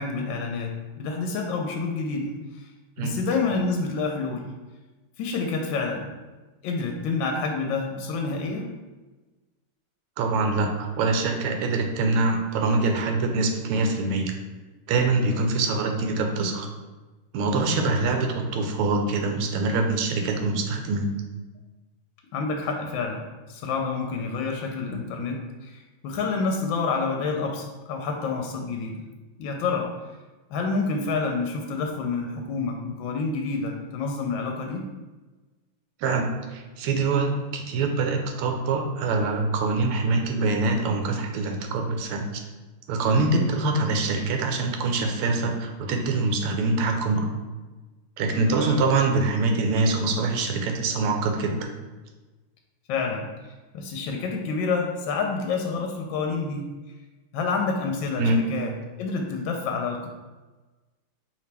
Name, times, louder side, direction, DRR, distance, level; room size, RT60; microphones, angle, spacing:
voice 1, 0.0-2.7 3.0-4.5 5.2-6.1 6.6-8.7 15.2-15.5 17.5-17.9 22.3-29.0 29.4-29.9 30.5-34.9 43.2-43.5 48.4-48.8 52.9-53.3 53.7-56.7 57.3-58.7 59.0-60.1, left 4 dB, 75° left, 2 dB, 1.2 m, -28 dB
voice 2, 10.2-14.3 14.9-16.7 17.3-21.2 36.0-42.4 42.9-47.3 48.2-51.7 58.2-58.4, right 3 dB, 85° right, 4 dB, 1.5 m, -24 dB
4.9 x 2.9 x 3.3 m, 1.2 s
omnidirectional pair, 2.4 m